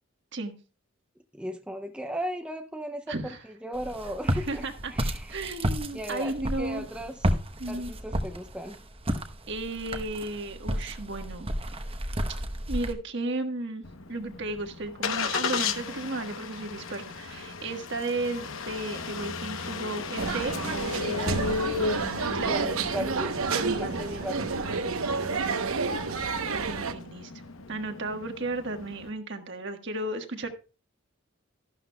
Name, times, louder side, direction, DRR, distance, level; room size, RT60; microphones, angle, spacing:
voice 1, 1.3-4.6 4.9-5.3 5.9-7.2 7.7-8.8 22.4-23.3 23.8-24.5, equal, 5° right, 5 dB, 0.4 m, -36 dB
voice 2, 3.1-3.4 4.3-4.9 5.3-6.9 7.6-7.9 9.5-11.5 12.7-20.6 20.9-21.4 22.3-22.7 23.5-25.5 26.5-27.3 27.7-30.5, right 2 dB, 55° right, 6 dB, 1.4 m, -34 dB
Walk footsteps, 3.7-12.9, equal, 25° right, 0.9 m, -32 dB
Engine starting, 13.8-29.1, left 5 dB, 70° left, 0.9 m, -35 dB
sound 1, 20.2-26.9, right 4 dB, 75° right, 0.9 m, -30 dB
13.0 x 11.5 x 2.3 m, 0.34 s
head